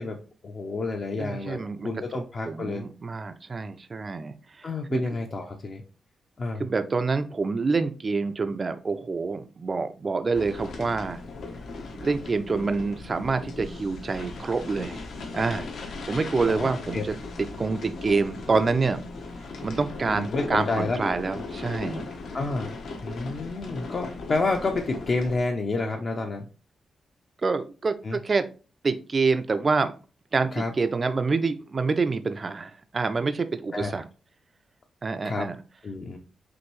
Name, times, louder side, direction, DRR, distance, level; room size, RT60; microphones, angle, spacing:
voice 1, 0.0-2.8 4.6-5.8 6.4-6.6 16.5-17.0 20.1-21.0 22.3-22.7 23.0-26.5 28.0-28.2 30.5-30.7 33.7-34.0 35.2-35.5 35.8-36.2, left 3 dB, 35° left, 3 dB, 0.5 m, -29 dB
voice 2, 1.2-1.9 2.5-5.0 6.6-11.2 12.0-15.0 15.3-19.0 19.6-22.1 27.4-28.5 28.8-29.9 30.3-34.0 35.0-35.6, right 4 dB, 30° right, 10 dB, 0.3 m, -27 dB
sound 1, 10.3-25.4, left 3 dB, 70° left, 0.9 m, -37 dB
6.1 x 2.6 x 3.0 m, 0.35 s
wide cardioid pair, 170°, 0 cm